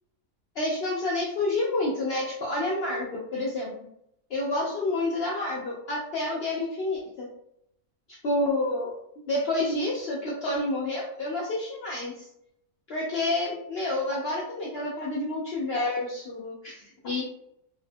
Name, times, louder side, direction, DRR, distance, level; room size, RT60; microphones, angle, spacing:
voice 1, 0.6-3.7 4.3-7.3 8.2-8.9 9.3-12.3 12.9-17.2, left 2 dB, 70° left, -4 dB, 0.6 m, -29 dB
2.7 x 2.1 x 2.5 m, 0.76 s
omnidirectional pair, 1.5 m